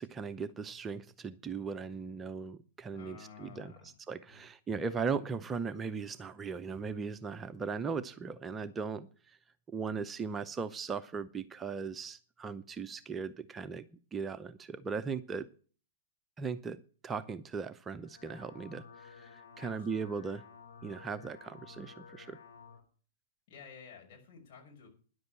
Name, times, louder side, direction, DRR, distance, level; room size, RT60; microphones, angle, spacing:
voice 1, 0.0-3.7 4.1-9.4 9.7-15.5 16.4-20.4 20.8-22.4, right 5 dB, 20° right, 11 dB, 0.6 m, -38 dB
voice 2, 2.9-3.9 4.3-4.4 19.6-20.1 23.5-24.9, left 6 dB, 50° left, 1 dB, 6.1 m, -52 dB
sound 1, 17.9-22.8, left 6 dB, 85° left, 3.0 m, -53 dB
10.5 x 7.9 x 8.8 m, 0.41 s
hypercardioid pair, 115°, 0 cm